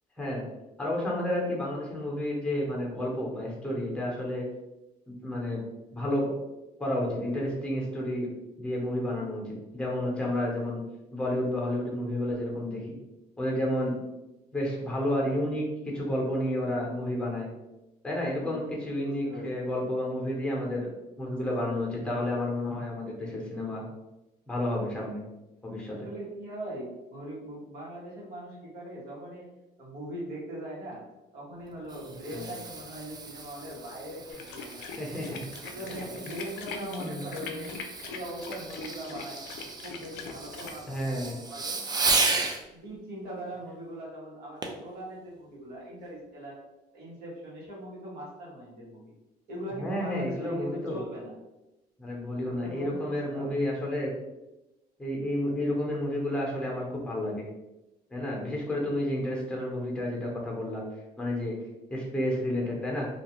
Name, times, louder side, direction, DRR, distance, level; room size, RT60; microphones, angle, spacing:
voice 1, 0.8-4.4 5.1-5.6 5.9-6.3 6.8-8.3 8.6-10.8 11.1-12.8 13.4-13.9 14.5-17.5 18.0-20.9 21.2-23.8 24.5-25.2 25.6-26.0 32.3-32.5 35.0-35.4 36.7-37.7 40.9-41.3 49.7-51.0 52.0-54.1 55.0-57.4 58.1-60.8 61.2-61.5 61.9-63.1, left 1 dB, 5° left, -3 dB, 0.9 m, -31 dB
voice 2, 18.2-18.6 19.0-19.5 25.9-29.5 29.8-31.0 31.3-35.0 35.6-37.7 38.0-39.4 39.7-41.9 42.7-46.6 46.9-49.0 49.5-51.3 52.4-53.6, right 1 dB, 70° right, -5 dB, 1.2 m, -40 dB
Fireworks, 31.6-42.6 44.6-44.9 45.5-45.6, right 3 dB, 25° right, 0.3 m, -34 dB
sound 1, 34.3-40.8, left 6 dB, 90° left, 0.4 m, -42 dB
2.4 x 2.3 x 3.0 m, 0.99 s
cardioid pair, 110°, 17 cm